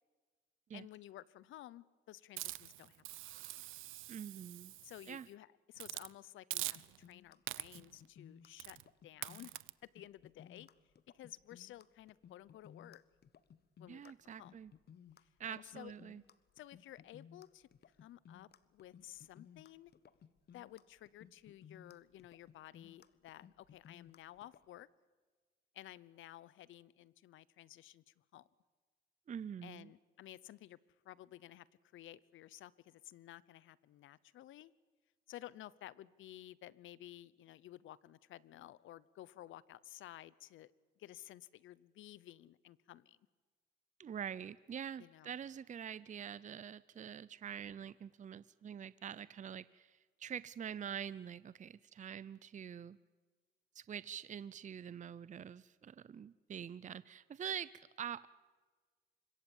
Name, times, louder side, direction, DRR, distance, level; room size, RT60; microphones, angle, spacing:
voice 1, 0.7-3.0 4.8-8.8 9.0-9.5 9.8-10.7 11.1-13.0 13.8-14.5 15.2-15.9 16.6-17.7 18.0-19.9 20.5-24.9 25.7-28.5 29.6-30.8 31.0-31.7 31.9-34.7 35.3-40.7 41.0-43.2 45.0-45.3, left 13 dB, 80° left, 21 dB, 0.9 m, -54 dB
Hiss, 2.4-5.2 5.8-6.1 6.5-7.1 7.5-7.9 8.6-8.8 9.2-9.7, right 17 dB, 90° right, 0.7 m, -44 dB
voice 2, 4.1-4.7 5.1-5.3 13.9-14.7 15.4-16.2 29.3-29.9 44.0-53.0 53.7-58.3, right 8 dB, 40° right, 18 dB, 0.6 m, -45 dB
sound 1, 6.8-24.7, left 8 dB, 55° left, 1.3 m, -59 dB
25.0 x 22.5 x 7.3 m, 1.4 s
cardioid pair, 90°, 20 cm